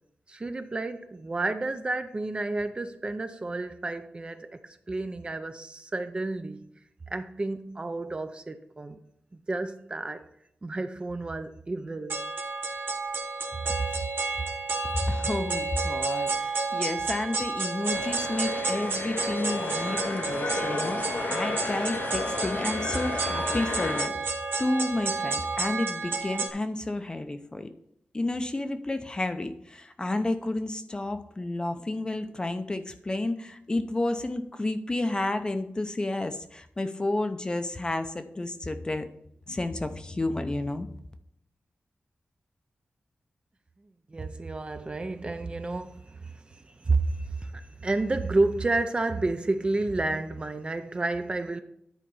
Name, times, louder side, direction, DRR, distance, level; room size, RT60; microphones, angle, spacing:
voice 1, 0.3-6.6 7.1-9.0 9.3-10.2 10.6-12.2 44.1-51.6, right 2 dB, 30° right, 0.6 m, -30 dB
sound 1, 12.1-26.5, right 3 dB, 80° right, 1.1 m, -31 dB
voice 2, 14.9-27.7 28.1-39.1 39.5-40.9, left 2 dB, 25° left, 0.6 m, -31 dB
sound 2, 17.9-24.1, left 3 dB, 60° left, 0.7 m, -33 dB
10.5 x 4.4 x 5.4 m
wide cardioid pair, 150°, 4 cm